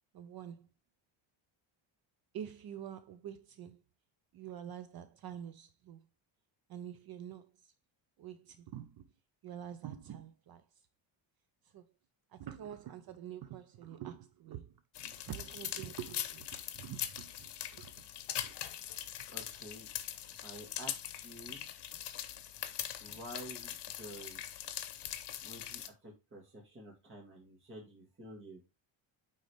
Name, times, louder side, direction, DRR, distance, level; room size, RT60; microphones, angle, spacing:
voice 1, 0.1-0.7 2.3-3.8 4.3-6.1 6.7-7.7 8.2-9.0 9.4-10.6 11.7-11.9 12.3-14.7 15.0-17.3 17.7-17.9 18.4-18.5, right 10 dB, 50° right, 0.6 m, -46 dB
sound 1, 14.9-25.9, left 11 dB, 60° left, 1.0 m, -42 dB
voice 2, 19.3-19.9 20.4-21.7 23.0-24.4 25.4-28.6, right 1 dB, 25° right, 1.9 m, -50 dB
9.1 x 4.0 x 3.4 m
cardioid pair, 145°, 48 cm